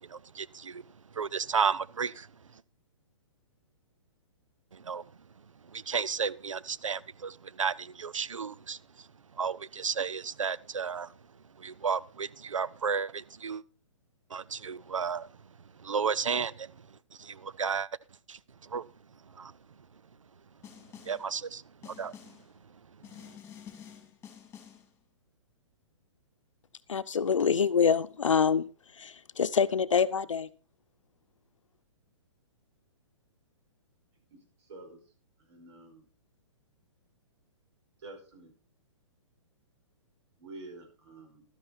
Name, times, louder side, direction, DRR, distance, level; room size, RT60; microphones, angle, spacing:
voice 1, 0.0-2.6 4.7-5.1 5.6-11.2 11.6-13.6 14.3-17.9 18.3-18.9 19.2-19.6 21.0-22.2 23.0-23.3, right 6 dB, 90° right, 0.6 m, -34 dB
Snare drum, 20.6-21.3 21.8-22.5 23.0-24.9, left 8 dB, 15° left, 2.7 m, -49 dB
voice 2, 26.9-28.7 28.9-30.5, left 6 dB, 85° left, 0.8 m, -26 dB
voice 3, 34.3-35.0 35.4-36.0 38.0-38.5 40.4-41.4, right 2 dB, 60° right, 5.2 m, -48 dB
12.5 x 10.0 x 4.2 m
hypercardioid pair, 130°, 16 cm